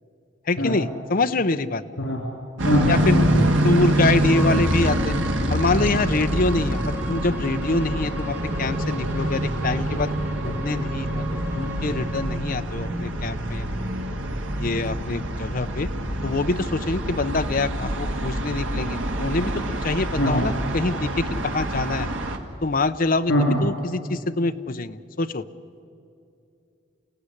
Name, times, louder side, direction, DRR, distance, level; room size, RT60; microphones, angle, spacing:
voice 1, 0.5-1.8 2.9-3.2 3.6-5.1 5.5-10.1 10.4-13.9 14.6-15.9 16.2-22.1 22.6-23.3 23.6-25.4, left 3 dB, 45° left, 10 dB, 0.7 m, -25 dB
voice 2, 2.6-3.5 20.1-20.5 23.3-23.6, equal, 80° left, 0 dB, 3.8 m, -22 dB
sound 1, 2.6-22.4, right 1 dB, 85° right, 2.0 m, -26 dB
Bowed string instrument, 4.3-12.3, right 1 dB, 10° right, 6.1 m, -38 dB
29.0 x 16.0 x 9.9 m, 2.6 s
head